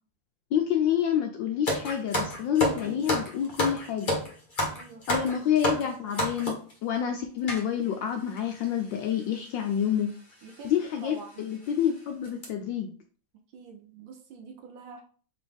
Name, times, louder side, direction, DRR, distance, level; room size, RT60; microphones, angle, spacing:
voice 1, 0.5-4.2 5.1-6.6 6.8-10.1 10.6-12.9, left 9 dB, 75° left, 4 dB, 1.1 m, -28 dB
sound 1, 1.7-6.7 7.5-7.6 8.4-8.5 8.6-8.8 9.8-10.0 10.5-10.6 11.1-11.2 11.6-11.9 12.2-12.4, left 1 dB, 40° left, 0.7 m, -29 dB
voice 2, 4.7-5.2 10.4-11.4 13.5-15.0, right 4 dB, 70° right, 3 dB, 1.4 m, -46 dB
4.4 x 3.0 x 3.4 m, 0.42 s
omnidirectional pair, 2.4 m